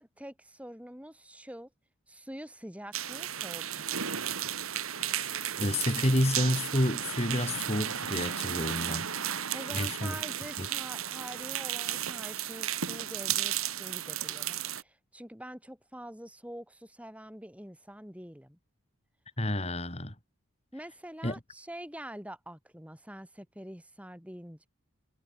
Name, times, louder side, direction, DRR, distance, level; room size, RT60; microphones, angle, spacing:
voice 1, 0.0-1.7 2.1-3.9 9.5-18.6 20.7-24.7, equal, 5° right, 5.7 m, -45 dB
sound 1, 2.9-14.8, right 10 dB, 85° right, 3.1 m, -34 dB
voice 2, 5.0-9.1 9.7-10.1 10.6-10.7 19.4-20.1 21.2-21.3, left 1 dB, 30° left, 3.1 m, -30 dB
head